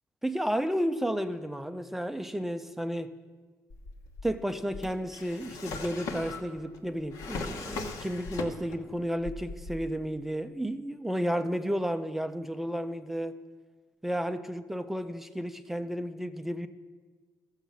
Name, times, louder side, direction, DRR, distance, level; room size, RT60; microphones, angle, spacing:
voice 1, 0.2-3.1 4.2-13.4 14.0-16.7, equal, 5° right, 0.4 m, -32 dB
Drawer open or close, 3.7-8.9 9.2-10.0, left 3 dB, 70° left, 1.3 m, -39 dB
14.0 x 7.2 x 6.9 m
cardioid pair, 145°, 6 cm